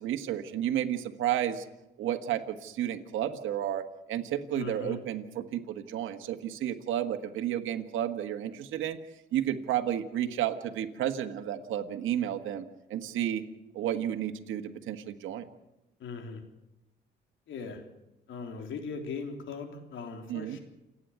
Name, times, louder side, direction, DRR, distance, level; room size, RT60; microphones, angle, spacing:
voice 1, 0.0-1.7 2.0-9.0 9.3-13.4 13.7-15.5 20.3-20.6, right 11 dB, 85° right, 6 dB, 1.6 m, -32 dB
voice 2, 4.5-5.0 16.0-16.4 17.5-17.8 18.3-20.6, left 5 dB, 75° left, 5 dB, 3.6 m, -39 dB
28.5 x 9.7 x 9.5 m, 0.94 s
cardioid pair, 90°, 20 cm